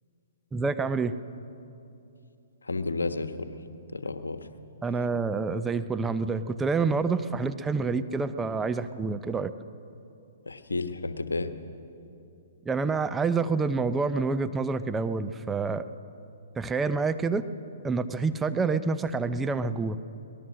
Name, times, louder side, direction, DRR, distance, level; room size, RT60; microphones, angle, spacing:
voice 1, 0.5-1.1 4.8-9.5 12.7-15.9 16.6-17.4 17.8-20.0, right 4 dB, 10° right, 10 dB, 0.7 m, -27 dB
voice 2, 2.7-3.5 3.9-4.4 10.5-11.5, left 3 dB, 85° left, 9 dB, 1.3 m, -31 dB
23.5 x 19.5 x 6.4 m, 2.7 s
hypercardioid pair, 125°, 0 cm